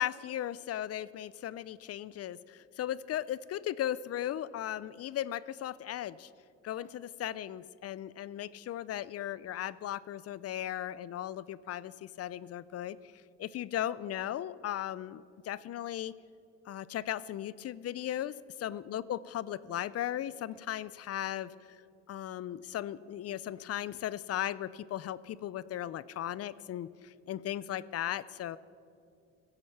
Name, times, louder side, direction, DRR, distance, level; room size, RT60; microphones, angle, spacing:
voice 1, 0.0-6.3 6.6-13.0 13.4-16.1 16.7-18.3 18.6-21.5 22.1-28.6, left 12 dB, 55° left, 18 dB, 0.4 m, -37 dB
15.5 x 8.0 x 5.9 m, 2.5 s
cardioid pair, 90°, 30 cm